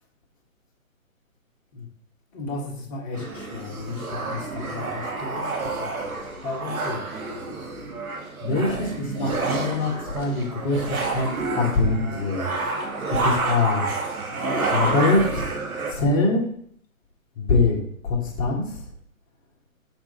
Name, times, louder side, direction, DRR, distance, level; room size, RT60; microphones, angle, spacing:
voice 1, 2.3-7.1 8.4-12.5 13.1-13.9 14.7-16.5 17.3-18.9, left 3 dB, 25° left, -1 dB, 1.3 m, -25 dB
sound 1, 3.1-15.9, right 3 dB, 85° right, 1.6 m, -29 dB
6.1 x 3.9 x 5.3 m, 0.65 s
hypercardioid pair, 150°, 42 cm